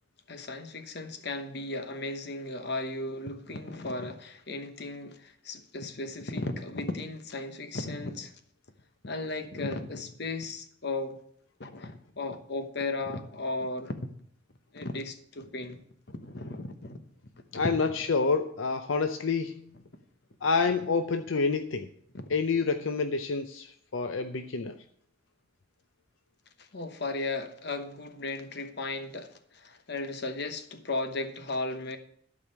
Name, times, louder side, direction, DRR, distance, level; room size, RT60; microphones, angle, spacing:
voice 1, 0.3-8.3 9.0-11.2 11.6-13.9 14.7-15.8 16.1-17.0 17.5-17.6 22.1-22.3 26.6-32.0, left 2 dB, 55° left, 1.0 m, -35 dB
voice 2, 17.5-19.7 20.4-21.9 22.3-23.7 23.9-24.8, left 4 dB, 75° left, 0.6 m, -28 dB
12.0 x 4.9 x 8.3 m
head